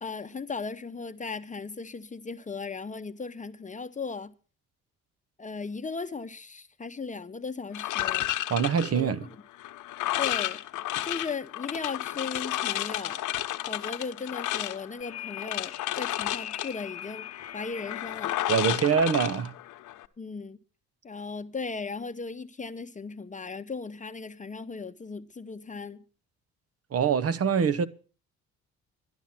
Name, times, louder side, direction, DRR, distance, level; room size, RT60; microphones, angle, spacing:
voice 1, 0.0-4.3 5.4-8.3 8.9-9.3 10.2-10.6 11.0-13.2 13.7-17.3 17.5-18.4 20.2-20.6 21.0-26.0, left 4 dB, 25° left, 0.8 m, -37 dB
sound 1, 7.7-20.1, left 15 dB, 85° left, 1.0 m, -32 dB
voice 2, 8.5-9.2 18.5-19.5 26.9-27.8, right 7 dB, 50° right, 1.1 m, -24 dB
sound 2, 15.0-18.5, left 10 dB, 55° left, 1.0 m, -42 dB
12.5 x 11.5 x 5.9 m
cardioid pair, 90°, 30 cm